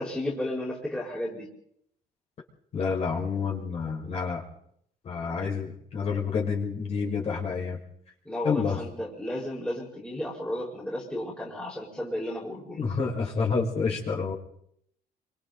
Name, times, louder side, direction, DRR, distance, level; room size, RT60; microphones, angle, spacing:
voice 1, 0.0-1.5 8.2-12.8, left 1 dB, 5° left, -4 dB, 4.8 m, -33 dB
voice 2, 2.7-4.4 5.0-7.8 8.4-8.8 12.8-14.3, left 5 dB, 35° left, -2 dB, 5.4 m, -28 dB
28.5 x 26.0 x 4.0 m, 0.70 s
cardioid pair, 175°, 17 cm